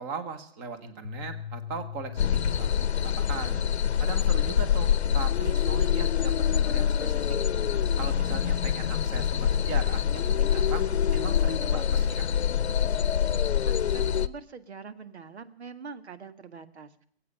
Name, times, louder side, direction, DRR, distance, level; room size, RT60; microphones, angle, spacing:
voice 1, 0.0-3.6 4.0-7.4 8.0-12.3, right 5 dB, 15° right, 11 dB, 1.1 m, -39 dB
sound 1, 1.0-3.5, left 9 dB, 50° left, 0.7 m, -41 dB
sound 2, 2.2-14.3, left 9 dB, 80° left, 0.8 m, -25 dB
voice 2, 13.6-17.1, right 5 dB, 85° right, 12 dB, 1.9 m, -44 dB
21.5 x 8.6 x 6.7 m, 0.63 s
hypercardioid pair, 165°, 32 cm